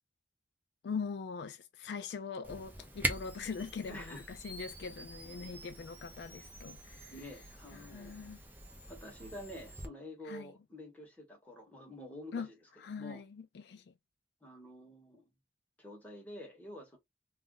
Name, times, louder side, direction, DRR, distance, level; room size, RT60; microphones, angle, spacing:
voice 1, 0.8-7.1 7.7-8.4 10.3-10.5 12.3-12.5 12.8-13.9, left 5 dB, 65° left, 0.3 m, -42 dB
Camera, 2.4-9.9, right 1 dB, 10° right, 0.5 m, -43 dB
voice 2, 3.9-4.2 5.2-5.5 7.1-8.3 8.9-12.5 12.9-13.2 14.4-15.3 15.8-17.0, left 1 dB, 10° left, 1.0 m, -48 dB
2.4 x 2.1 x 3.7 m
head